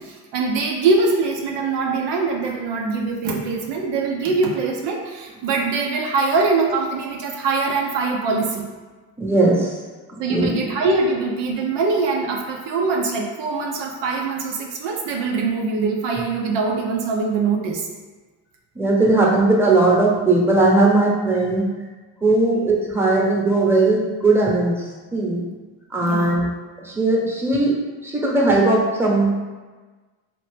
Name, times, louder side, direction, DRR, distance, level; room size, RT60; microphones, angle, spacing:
voice 1, 0.0-8.7 10.2-17.9 26.0-26.4, right 4 dB, 75° right, 0 dB, 0.6 m, -23 dB
voice 2, 9.2-9.8 10.3-10.7 18.7-21.6 22.2-25.4 25.9-26.5 26.8-29.4, right 2 dB, 5° right, -3 dB, 0.9 m, -18 dB
2.9 x 2.5 x 3.3 m, 1.3 s
hypercardioid pair, 45°, 42 cm